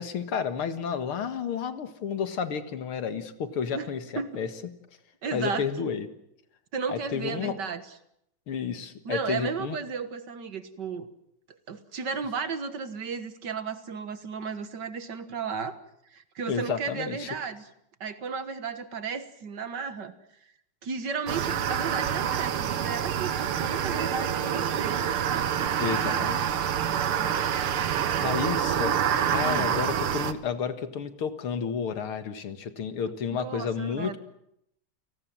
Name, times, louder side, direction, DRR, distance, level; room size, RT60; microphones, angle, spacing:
voice 1, 0.0-4.5 5.3-6.1 6.9-7.6 8.5-9.8 16.5-17.3 25.8-26.6 28.0-28.9 29.3-34.2, left 7 dB, 85° left, 10 dB, 2.6 m, -31 dB
voice 2, 5.2-5.7 6.7-7.8 9.1-11.1 11.5-15.8 16.1-17.7 18.0-20.1 20.8-26.4 26.8-27.3 28.0-28.3 29.4-29.7 33.3-34.2, right 5 dB, 55° right, 11 dB, 2.0 m, -34 dB
sound 1, 21.3-30.3, right 9 dB, 85° right, 2.1 m, -27 dB
29.5 x 18.5 x 7.6 m, 0.78 s
omnidirectional pair, 2.3 m